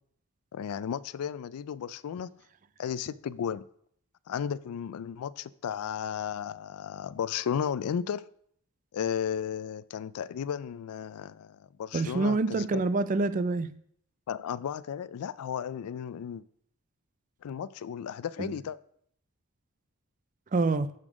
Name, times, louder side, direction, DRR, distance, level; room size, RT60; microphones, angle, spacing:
voice 1, 0.5-2.3 2.8-3.7 4.3-8.3 8.9-12.9 14.3-16.4 17.4-18.8, left 8 dB, 85° left, 0.3 m, -34 dB
voice 2, 11.9-13.7 18.4-18.5 20.5-20.9, right 3 dB, 35° right, 0.4 m, -27 dB
7.2 x 6.8 x 5.0 m
head